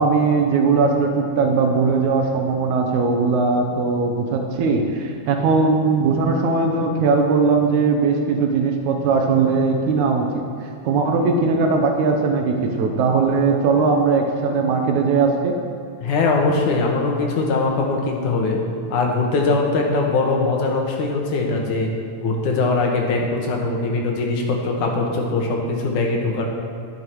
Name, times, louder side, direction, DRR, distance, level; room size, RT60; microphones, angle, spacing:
voice 1, 0.0-15.5, right 4 dB, 80° right, 3 dB, 2.3 m, -19 dB
voice 2, 16.0-18.6 18.9-21.9 22.2-26.4, left 3 dB, 85° left, 0 dB, 3.0 m, -21 dB
11.0 x 10.5 x 4.6 m, 2.6 s
omnidirectional pair, 3.4 m